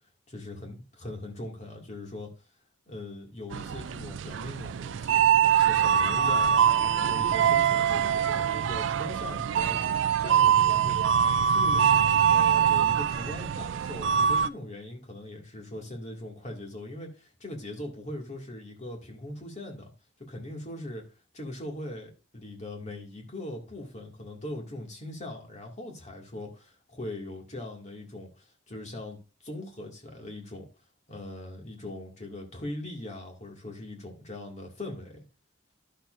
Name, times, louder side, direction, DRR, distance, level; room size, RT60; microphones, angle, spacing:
voice 1, 0.3-2.3 2.9-5.2 5.5-9.8 10.2-12.0 12.2-19.9 20.2-21.0 21.3-30.7 31.1-35.2, left 1 dB, 35° left, 2.1 m, -40 dB
sound 1, 3.5-14.5, right 8 dB, 70° right, 0.4 m, -24 dB
11.5 x 6.5 x 2.5 m
head